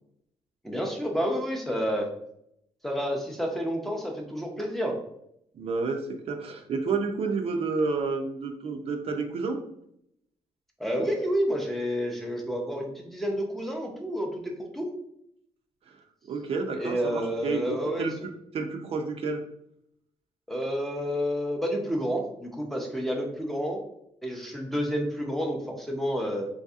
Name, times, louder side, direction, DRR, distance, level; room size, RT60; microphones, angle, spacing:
voice 1, 0.6-2.1 2.8-5.0 10.8-14.9 16.7-18.1 20.5-23.8 24.2-26.5, equal, ahead, 0 dB, 0.5 m, -29 dB
voice 2, 5.5-9.6 15.9-16.0 16.3-18.1 18.5-19.4, right 4 dB, 55° right, 4 dB, 0.4 m, -30 dB
3.3 x 2.6 x 2.3 m, 0.74 s
cardioid pair, 135°, 12 cm